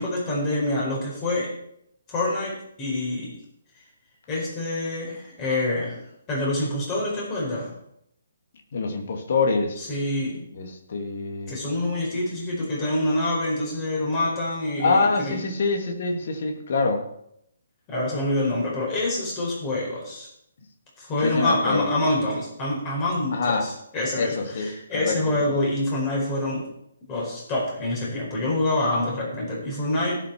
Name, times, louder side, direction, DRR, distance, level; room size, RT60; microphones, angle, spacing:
voice 1, 0.0-1.5 2.1-3.3 3.7-3.8 4.3-6.0 6.3-7.7 9.8-10.4 11.5-15.4 17.9-20.3 21.0-26.7 27.1-30.2, left 1 dB, 25° left, -4 dB, 4.9 m, -26 dB
voice 2, 8.7-9.8 10.5-11.5 14.8-17.0 21.2-21.9 23.3-23.7 24.1-25.2 25.5-25.6, left 4 dB, 50° left, 3 dB, 2.5 m, -25 dB
18.0 x 6.8 x 4.6 m, 0.76 s
figure-of-eight pair, 135°, 0 cm